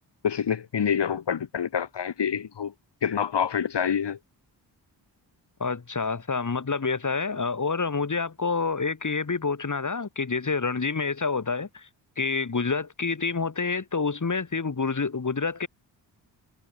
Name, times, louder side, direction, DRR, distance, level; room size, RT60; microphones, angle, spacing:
voice 1, 0.2-2.7 3.0-4.2, left 7 dB, 65° left, 4.2 m, -27 dB
voice 2, 5.6-11.9 12.2-15.7, left 4 dB, 40° left, 7.7 m, -28 dB
cardioid pair, 60°, 45 cm